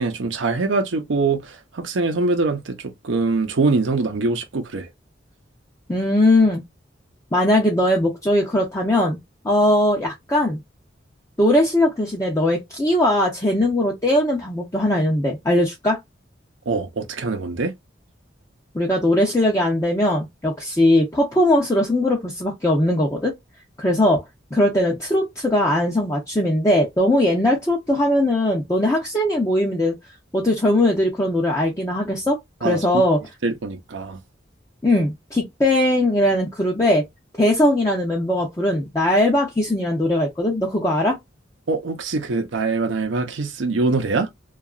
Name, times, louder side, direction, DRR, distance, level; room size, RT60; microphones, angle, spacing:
voice 1, 0.0-2.8 3.0-4.9 16.7-17.7 32.6-33.0 33.4-34.2 41.7-44.3, right 3 dB, 90° right, 0.6 m, -23 dB
voice 2, 5.9-6.6 7.3-9.2 9.4-10.6 11.4-16.0 18.7-23.3 23.8-24.2 24.5-29.9 30.3-33.2 34.8-37.0 37.4-41.2, left 1 dB, 15° left, 0.5 m, -20 dB
2.8 x 2.3 x 2.3 m
head